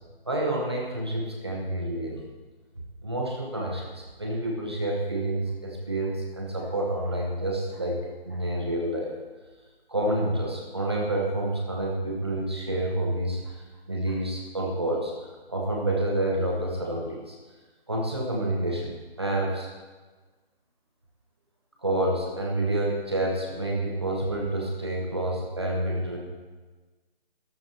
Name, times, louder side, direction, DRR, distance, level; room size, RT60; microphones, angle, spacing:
voice 1, 0.3-2.2 3.0-8.0 8.2-9.1 9.9-13.5 13.9-15.1 15.5-17.3 17.9-19.7 21.8-26.2, right 1 dB, 25° right, -1 dB, 1.1 m, -28 dB
13.5 x 13.5 x 2.8 m, 1.3 s
figure-of-eight pair, 175°, 31 cm